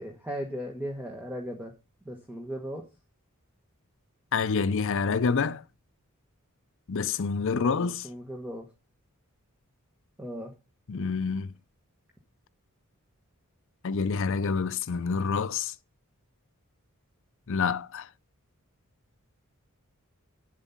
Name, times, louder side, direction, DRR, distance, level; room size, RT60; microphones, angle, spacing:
voice 1, 0.0-1.7 2.0-2.9 7.5-8.7 10.2-10.5, equal, 5° right, 1.3 m, -37 dB
voice 2, 4.3-5.6 6.9-8.1 10.9-11.5 13.8-15.7 17.5-18.1, left 5 dB, 60° left, 0.5 m, -27 dB
8.1 x 7.5 x 5.8 m
head